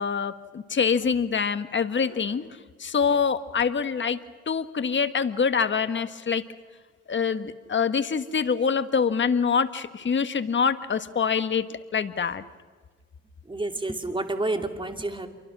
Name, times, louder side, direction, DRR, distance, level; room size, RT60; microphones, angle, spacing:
voice 1, 0.0-2.5 2.8-4.2 4.5-6.4 7.1-11.7 11.9-12.4, left 6 dB, 40° left, 10 dB, 1.5 m, -25 dB
voice 2, 13.5-15.3, right 2 dB, 15° right, 6 dB, 2.6 m, -29 dB
28.0 x 24.0 x 6.1 m, 1.5 s
cardioid pair, 90°, 30 cm